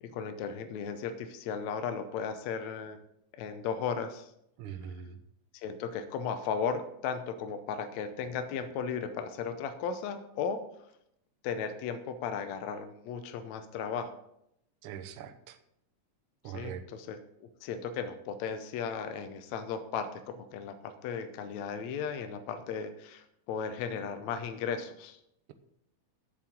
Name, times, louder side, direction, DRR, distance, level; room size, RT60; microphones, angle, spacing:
voice 1, 0.0-3.0 3.4-4.3 5.5-10.6 11.4-14.1 16.5-25.2, left 6 dB, 75° left, 9 dB, 1.9 m, -36 dB
voice 2, 4.6-5.2 14.8-15.6 16.4-16.8, right 8 dB, 70° right, 8 dB, 1.3 m, -42 dB
7.7 x 7.2 x 8.3 m, 0.77 s
omnidirectional pair, 3.5 m